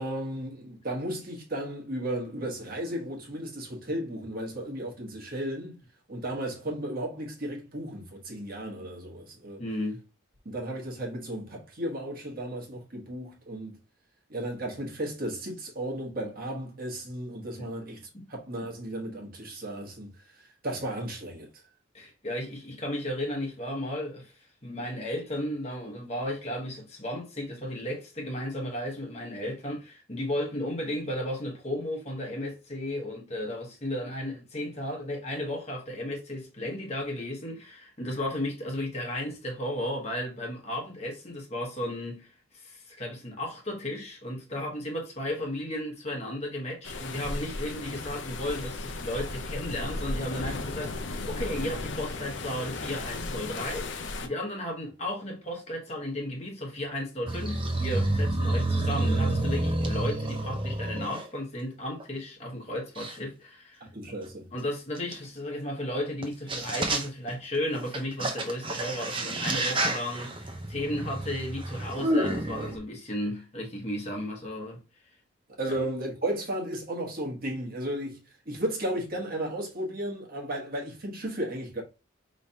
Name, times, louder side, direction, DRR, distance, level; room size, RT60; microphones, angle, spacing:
voice 1, 0.0-5.8 6.1-9.6 10.4-13.8 14.3-21.6 63.8-64.5 75.6-81.8, right 1 dB, 45° right, 1.3 m, -34 dB
voice 2, 9.6-10.0 17.6-17.7 18.1-18.3 21.9-64.1 64.5-74.8 75.7-75.8, left 1 dB, 30° left, 1.2 m, -34 dB
sound 1, 46.8-54.3, left 2 dB, 60° left, 0.6 m, -35 dB
sound 2, 57.3-61.2 62.0-62.1 63.0-63.1 65.1-65.2 66.2-66.3 66.5-67.3 67.7-72.8, right 1 dB, 25° right, 0.6 m, -29 dB
5.0 x 3.2 x 2.7 m
head